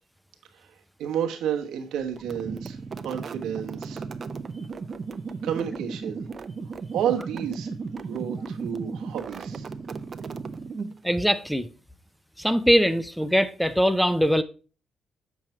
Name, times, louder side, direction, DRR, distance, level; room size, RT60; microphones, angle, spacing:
voice 1, 1.0-2.8 3.0-4.0 5.4-6.3 6.9-9.7, right 9 dB, 85° right, 1.2 m, -31 dB
sound 1, 2.1-11.1, right 4 dB, 40° right, 0.6 m, -35 dB
voice 2, 11.0-11.7 12.4-14.4, equal, ahead, 0.5 m, -22 dB
7.5 x 4.7 x 4.3 m
cardioid pair, 90°, 0 cm